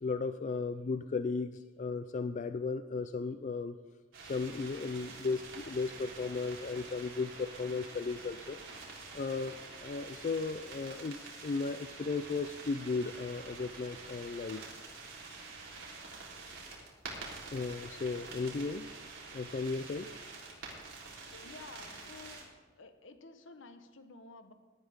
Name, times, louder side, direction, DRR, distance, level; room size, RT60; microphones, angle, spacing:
voice 1, 0.0-3.8 4.3-8.6 9.1-9.6 9.8-14.6 17.5-18.9 19.3-20.1, left 4 dB, 40° left, 11 dB, 0.3 m, -35 dB
sound 1, 4.1-22.4, right 3 dB, 80° right, 3.8 m, -47 dB
voice 2, 20.0-20.8 21.3-22.5 22.8-24.5, left 3 dB, 75° left, 8 dB, 1.1 m, -53 dB
18.0 x 11.5 x 3.6 m, 1.3 s
head